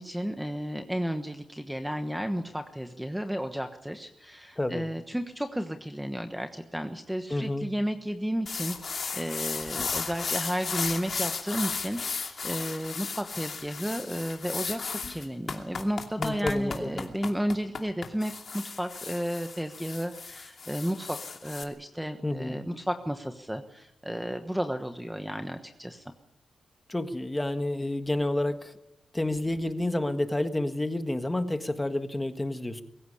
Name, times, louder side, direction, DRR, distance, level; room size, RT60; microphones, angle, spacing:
voice 1, 0.0-26.0, equal, 5° right, 6 dB, 1.2 m, -33 dB
voice 2, 7.3-7.7 16.2-17.1 22.2-22.6 26.9-28.7 29.1-32.8, left 1 dB, 10° left, 8 dB, 1.6 m, -29 dB
sound 1, 8.5-21.6, left 5 dB, 45° left, 2.7 m, -35 dB
23.5 x 15.5 x 10.0 m, 0.90 s
wide cardioid pair, 140°, 0 cm